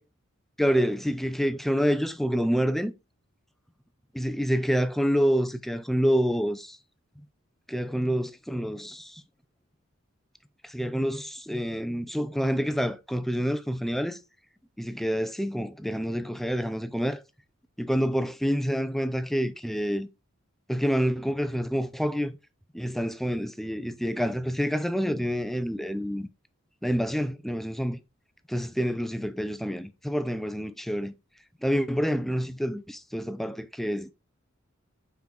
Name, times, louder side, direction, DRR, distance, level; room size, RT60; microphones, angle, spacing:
voice 1, 0.6-2.9 4.1-6.8 7.7-9.2 10.6-14.2 14.8-17.2 17.8-20.1 20.7-22.3 22.7-26.3 26.8-28.0 28.5-31.1 31.6-34.1, equal, ahead, 0.4 m, -27 dB
5.7 x 4.5 x 3.7 m
head